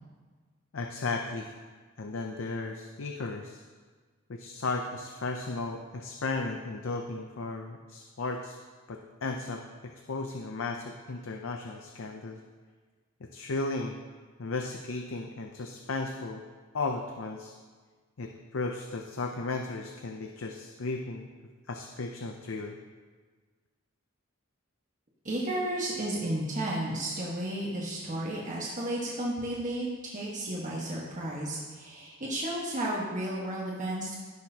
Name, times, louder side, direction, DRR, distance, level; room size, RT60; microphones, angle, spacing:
voice 1, 0.7-1.5 2.0-3.6 4.3-8.6 8.9-12.4 13.2-14.0 14.4-16.4 16.7-17.5 18.2-21.3 21.7-22.8, left 3 dB, 70° left, 4 dB, 0.6 m, -35 dB
voice 2, 25.2-34.2, right 1 dB, 40° right, -5 dB, 1.4 m, -33 dB
16.5 x 6.3 x 2.9 m, 1.5 s
head